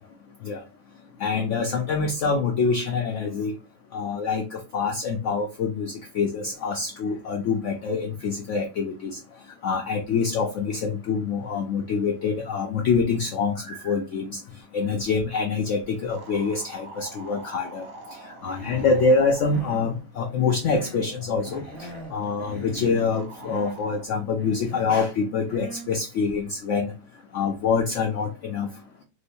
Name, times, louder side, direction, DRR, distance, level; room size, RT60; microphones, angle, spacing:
voice 1, 1.2-3.5 3.9-9.2 9.6-14.4 14.7-17.9 18.4-21.6 22.1-26.9 27.3-28.7, left 4 dB, 90° left, 3 dB, 0.6 m, -25 dB
sound 1, 16.1-20.1 21.4-22.6 23.1-24.1, right 2 dB, 65° right, 1.1 m, -45 dB
Human voice, 18.4-19.1 19.4-19.9 20.4-21.1 21.4-22.1 22.4-23.1 23.4-23.8 24.4-25.0 25.4-25.9, left 2 dB, 25° right, 1.2 m, -39 dB
3.0 x 2.1 x 4.1 m, 0.30 s
omnidirectional pair, 1.8 m